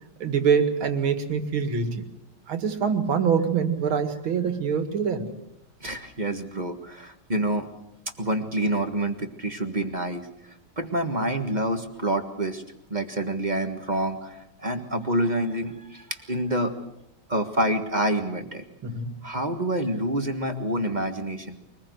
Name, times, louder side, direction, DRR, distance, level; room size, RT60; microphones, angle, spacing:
voice 1, 0.2-2.0 2.5-5.3 18.8-19.1, right 6 dB, 70° right, 8 dB, 2.8 m, -24 dB
voice 2, 5.8-7.7 8.2-10.3 10.8-12.6 12.9-16.7 17.3-18.6 19.2-21.6, right 1 dB, 25° right, 6 dB, 1.4 m, -27 dB
24.0 x 20.0 x 7.9 m, 0.84 s
omnidirectional pair, 2.4 m